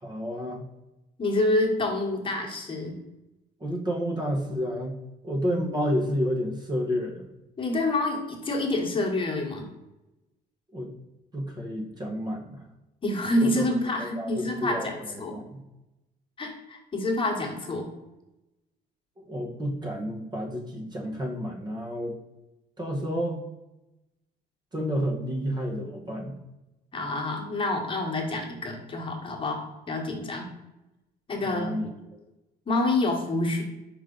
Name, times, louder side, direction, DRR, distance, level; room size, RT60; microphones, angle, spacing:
voice 1, 0.0-0.7 3.6-5.0 5.2-7.3 10.7-10.9 11.3-12.6 13.4-13.6 14.0-15.6 19.2-22.2 22.8-23.4 24.7-26.3 31.4-32.2, equal, 25° right, 1 dB, 1.2 m, -30 dB
voice 2, 1.2-3.0 7.6-9.7 13.0-15.4 16.4-17.9 26.9-30.5 31.3-31.8 32.7-33.6, left 2 dB, 30° left, 0 dB, 1.4 m, -27 dB
5.2 x 5.1 x 3.9 m, 0.98 s
cardioid pair, 110°, 17 cm